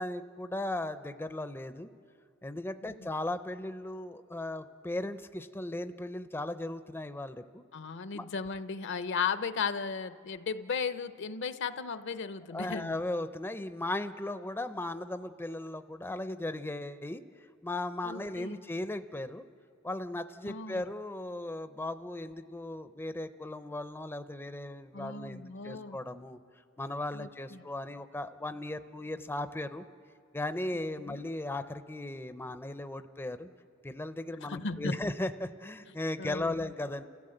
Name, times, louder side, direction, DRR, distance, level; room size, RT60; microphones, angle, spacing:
voice 1, 0.0-1.9 2.4-7.6 8.1-8.3 12.5-17.2 17.6-19.4 19.8-26.4 26.8-29.8 30.3-33.5 33.8-37.1, left 1 dB, 10° left, 10 dB, 0.5 m, -37 dB
voice 2, 7.7-13.0 18.0-18.6 20.4-20.8 24.9-26.0 27.1-27.6 31.0-31.2 34.4-35.0 36.2-36.7, left 5 dB, 60° left, 13 dB, 0.6 m, -36 dB
29.5 x 15.5 x 7.8 m, 2.4 s
head